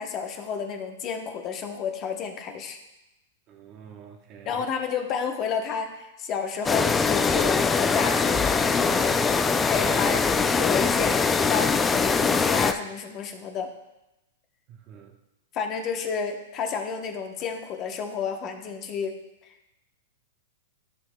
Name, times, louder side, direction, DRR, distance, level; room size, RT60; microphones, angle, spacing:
voice 1, 0.0-2.8 4.4-13.7 15.5-19.2 19.4-19.8, left 6 dB, 30° left, 5 dB, 0.8 m, -31 dB
voice 2, 3.5-4.7 14.7-15.2, right 7 dB, 35° right, 4 dB, 1.0 m, -47 dB
sound 1, 6.6-12.7, left 5 dB, 15° left, 0.3 m, -22 dB
13.0 x 5.8 x 2.2 m, 0.94 s
hypercardioid pair, 140°, 0 cm